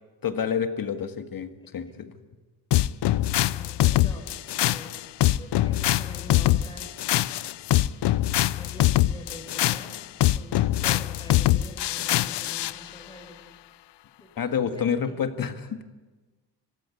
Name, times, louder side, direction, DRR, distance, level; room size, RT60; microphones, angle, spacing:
voice 1, 0.2-2.1 14.4-15.8, left 7 dB, 55° left, 8 dB, 1.9 m, -28 dB
sound 1, 2.7-12.8, left 14 dB, 75° left, 0.7 m, -23 dB
voice 2, 3.3-5.0 5.3-7.3 8.2-13.5 14.2-15.2, left 1 dB, 10° left, 2 dB, 7.1 m, -46 dB
25.0 x 16.0 x 9.9 m, 1.3 s
cardioid pair, 100°, 42 cm